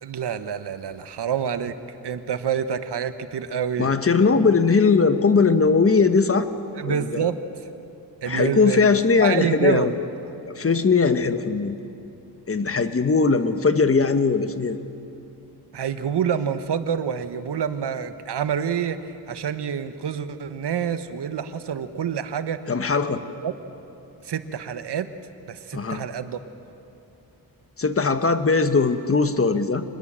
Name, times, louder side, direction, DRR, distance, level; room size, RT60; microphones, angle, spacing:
voice 1, 0.0-1.7 2.0-3.9 6.7-7.4 8.2-8.9 9.2-10.0 15.7-22.6 23.4-23.5 24.2-25.1 25.5-26.6, right 8 dB, 80° right, 11 dB, 1.3 m, -27 dB
voice 2, 3.8-6.5 6.9-7.2 8.3-9.9 10.5-11.8 12.5-14.8 22.7-23.2 25.7-26.0 27.8-29.8, left 4 dB, 35° left, 9 dB, 1.3 m, -20 dB
26.0 x 21.0 x 7.6 m, 2.8 s
wide cardioid pair, 90°, 40 cm